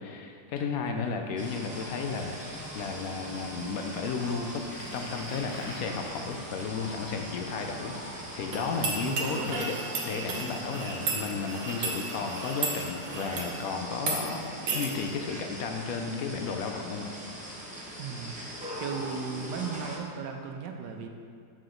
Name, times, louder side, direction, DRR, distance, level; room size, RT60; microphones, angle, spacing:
voice 1, 0.0-4.6 4.9-9.8 10.0-14.4 14.7-17.4, left 5 dB, 70° left, 4 dB, 0.9 m, -33 dB
voice 2, 0.8-1.3 9.0-9.5 18.0-18.4 18.8-21.1, right 6 dB, 80° right, 4 dB, 1.3 m, -36 dB
sound 1, 1.4-20.0, equal, 5° right, 0.6 m, -41 dB
Bicycle, 2.0-9.6, left 1 dB, 55° left, 1.3 m, -49 dB
sound 2, 8.5-13.5 14.0-14.2 14.7-14.9, right 4 dB, 60° right, 1.2 m, -34 dB
7.5 x 4.9 x 3.8 m, 2.3 s
omnidirectional pair, 1.8 m